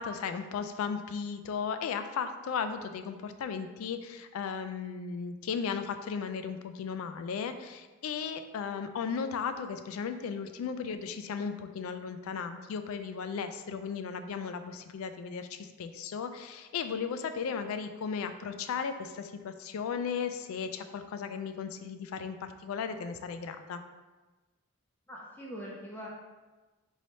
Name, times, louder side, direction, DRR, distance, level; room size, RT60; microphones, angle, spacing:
voice 1, 0.0-23.8, left 6 dB, 75° left, 10 dB, 0.3 m, -36 dB
voice 2, 25.1-26.2, equal, 10° left, -4 dB, 0.4 m, -42 dB
3.2 x 2.7 x 4.2 m, 1.2 s
head